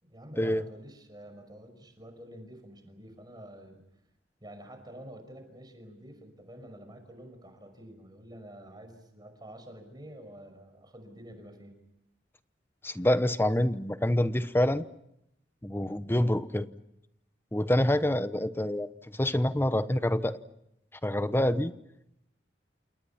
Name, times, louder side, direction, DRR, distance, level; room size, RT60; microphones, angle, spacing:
voice 1, 0.0-3.8 4.4-11.8, right 1 dB, 25° right, 7 dB, 5.6 m, -48 dB
voice 2, 12.8-14.8 15.6-16.7 17.5-20.4 21.0-21.7, left 1 dB, 15° left, 12 dB, 0.9 m, -26 dB
29.0 x 28.5 x 5.9 m, 0.82 s
head